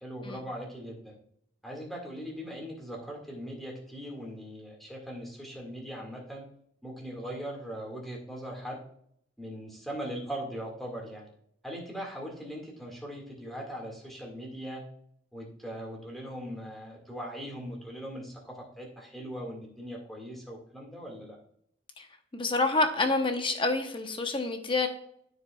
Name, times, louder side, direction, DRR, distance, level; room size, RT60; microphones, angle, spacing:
voice 1, 0.0-1.1 1.6-6.4 6.8-8.8 9.4-11.3 11.6-14.8 15.3-21.4, equal, ahead, -2 dB, 1.9 m, -40 dB
voice 2, 22.3-24.9, left 3 dB, 25° left, 6 dB, 0.9 m, -27 dB
13.0 x 4.8 x 2.3 m, 0.68 s
head